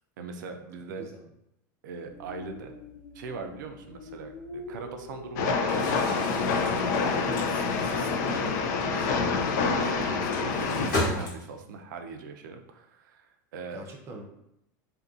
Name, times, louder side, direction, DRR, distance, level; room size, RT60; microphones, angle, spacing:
voice 1, 0.2-1.1 1.8-2.7 3.1-6.3 8.0-8.1 8.9-9.3 9.8-13.8, right 4 dB, 80° right, 6 dB, 0.4 m, -41 dB
sound 1, 2.1-9.5, left 2 dB, 45° left, 0.8 m, -44 dB
Train, 5.4-10.9, left 4 dB, 70° left, 0.4 m, -27 dB
Crumpling crinkling, 5.6-11.8, left 1 dB, 85° left, 1.1 m, -36 dB
voice 2, 7.2-8.6 13.7-14.2, right 3 dB, 25° right, 1 dB, 0.6 m, -42 dB
2.8 x 2.6 x 2.4 m, 0.80 s
hypercardioid pair, 105°, 10 cm